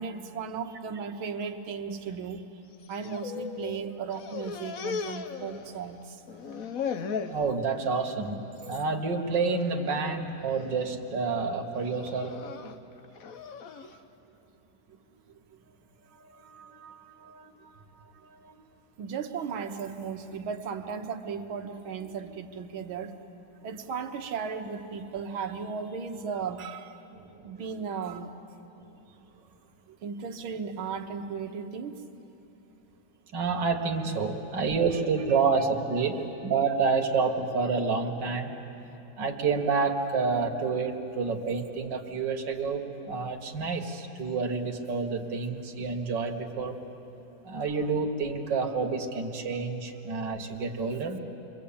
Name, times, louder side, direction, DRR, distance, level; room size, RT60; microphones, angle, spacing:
voice 1, 0.0-2.4 2.9-6.2 13.8-13.9 15.5-15.6 19.0-23.1 23.6-27.0 27.4-28.3 29.9-32.3 34.9-35.0 35.3-35.4, right 6 dB, 90° right, 6 dB, 2.1 m, -36 dB
sound 1, 2.7-3.8 4.1-6.0 6.3-7.4 7.9-8.3 8.6-8.8 9.6-10.0 10.5-10.9 11.7-13.9, left 6 dB, 55° left, 1.1 m, -37 dB
voice 2, 7.3-8.4 8.7-12.4 16.2-17.8 18.4-18.5 27.1-27.5 33.3-38.5 39.2-46.8 47.4-51.2, right 4 dB, 65° right, 2 dB, 2.3 m, -29 dB
28.5 x 23.0 x 8.7 m, 2.9 s
omnidirectional pair, 2.2 m